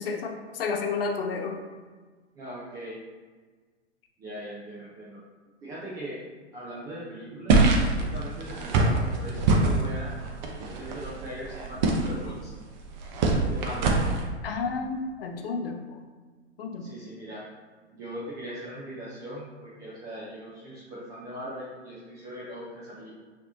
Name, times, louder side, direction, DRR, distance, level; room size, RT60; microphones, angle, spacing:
voice 1, 0.0-1.6 14.4-15.8 16.6-16.9, left 4 dB, 55° left, 3 dB, 0.7 m, -31 dB
voice 2, 2.4-3.0 4.2-5.2 5.6-6.2 6.5-7.6 7.9-10.1 10.6-12.5 13.4-14.0 16.8-17.5 17.9-23.1, right 1 dB, 10° right, -7 dB, 0.3 m, -40 dB
sound 1, 7.5-14.2, right 3 dB, 40° right, 0.7 m, -25 dB
5.8 x 2.8 x 2.7 m, 1.4 s
figure-of-eight pair, 105°, 34 cm